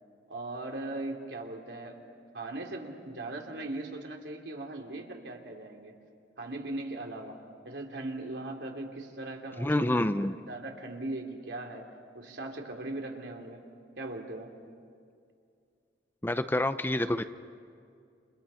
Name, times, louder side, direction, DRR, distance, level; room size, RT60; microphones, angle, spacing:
voice 1, 0.3-2.0 2.3-5.9 6.4-7.4 7.6-10.1 10.5-11.9 12.1-13.6 14.0-14.5, right 2 dB, 80° right, 1 dB, 3.3 m, -39 dB
voice 2, 9.6-10.4 16.2-17.2, left 1 dB, 10° left, 10 dB, 0.6 m, -27 dB
30.0 x 29.0 x 5.7 m, 2.3 s
head